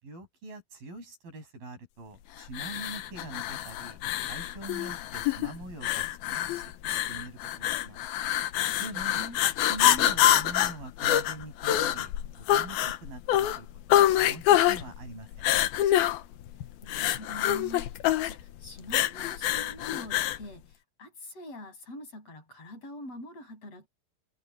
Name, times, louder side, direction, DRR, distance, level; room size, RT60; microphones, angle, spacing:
voice 1, 0.0-8.0 8.8-9.2 9.6-15.5, right 2 dB, 70° right, 9.5 m, -44 dB
sound 1, 2.5-20.4, left 12 dB, 90° left, 3.0 m, -26 dB
voice 2, 8.9-9.4 16.8-17.9 18.2-23.9, left 1 dB, 40° left, 8.4 m, -44 dB
omnidirectional pair, 4.2 m